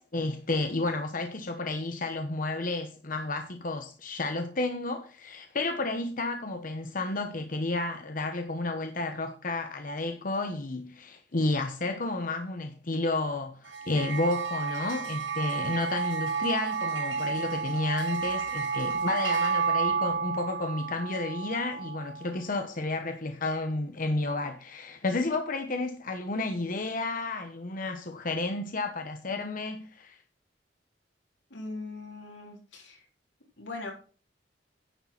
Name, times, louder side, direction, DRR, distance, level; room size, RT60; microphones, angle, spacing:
voice 1, 0.0-30.2, left 2 dB, 50° left, 1.0 m, -31 dB
sound 1, 13.7-22.3, right 5 dB, 85° right, 1.7 m, -31 dB
voice 2, 31.5-33.0 33.6-33.9, left 2 dB, 85° left, 4.0 m, -40 dB
10.5 x 6.6 x 5.8 m
head